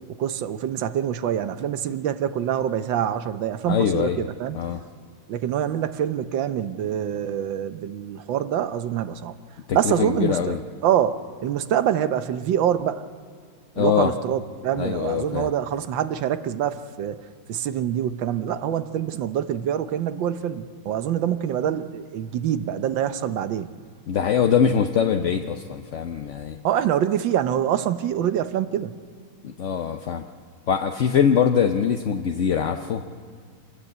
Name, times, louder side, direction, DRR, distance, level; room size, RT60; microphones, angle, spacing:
voice 1, 0.1-4.6 5.3-9.3 9.7-10.6 10.8-13.0 13.8-17.2 17.5-23.7 26.6-28.9, right 10 dB, 90° right, 11 dB, 1.6 m, -25 dB
voice 2, 3.7-4.2 4.5-4.8 9.7-10.6 13.8-14.1 14.8-15.5 24.1-26.6 29.4-30.2 30.7-33.0, left 8 dB, 55° left, 5 dB, 0.8 m, -23 dB
26.0 x 19.5 x 8.0 m, 2.1 s
omnidirectional pair, 2.0 m